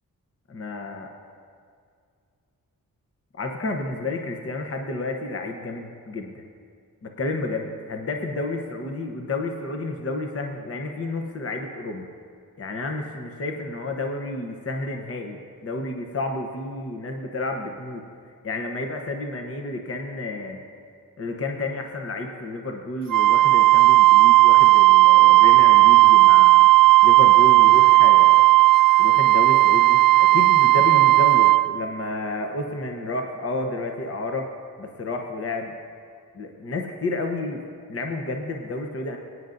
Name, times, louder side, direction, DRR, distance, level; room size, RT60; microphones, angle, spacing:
voice 1, 0.5-1.1 3.3-6.4 7.0-12.1 12.6-18.0 18.4-20.6 21.2-26.7 27.0-28.4 29.0-34.5 34.8-35.7 36.3-37.6 37.9-39.2, left 2 dB, 40° left, 3 dB, 0.9 m, -31 dB
Wind instrument woodwind instrument, 23.1-31.7, right 18 dB, 70° right, 0.6 m, -14 dB
24.0 x 9.3 x 2.6 m, 2.3 s
wide cardioid pair, 130°, 34 cm